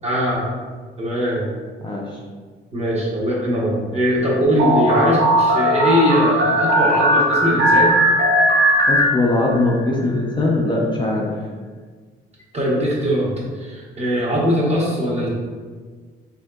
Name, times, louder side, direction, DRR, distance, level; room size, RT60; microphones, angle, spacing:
voice 1, 0.0-0.5 1.0-1.4 2.7-7.9 12.5-15.3, equal, 35° right, -5 dB, 1.0 m, -20 dB
sound 1, 4.6-9.7, equal, 70° right, 0.7 m, -17 dB
voice 2, 8.9-11.3, left 2 dB, 25° left, -4 dB, 0.5 m, -20 dB
3.5 x 2.7 x 2.3 m, 1.5 s
cardioid pair, 90°, 20 cm